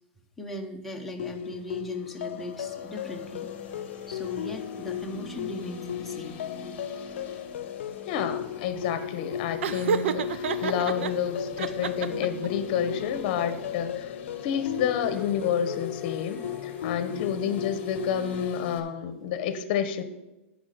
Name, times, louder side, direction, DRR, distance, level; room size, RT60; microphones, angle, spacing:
voice 1, 0.4-3.5 4.1-6.4 17.1-17.4, equal, ahead, 0 dB, 0.8 m, -39 dB
sound 1, 1.2-18.8, left 11 dB, 85° left, 0.4 m, -36 dB
sound 2, 1.9-18.8, left 3 dB, 25° left, 1.2 m, -44 dB
voice 2, 8.0-14.1 14.4-20.0, left 8 dB, 40° left, 11 dB, 0.9 m, -29 dB
Laughter, 9.6-11.1 11.6-12.5, right 7 dB, 80° right, 0.6 m, -28 dB
10.5 x 5.0 x 6.6 m, 1.0 s
supercardioid pair, 165°, 7 cm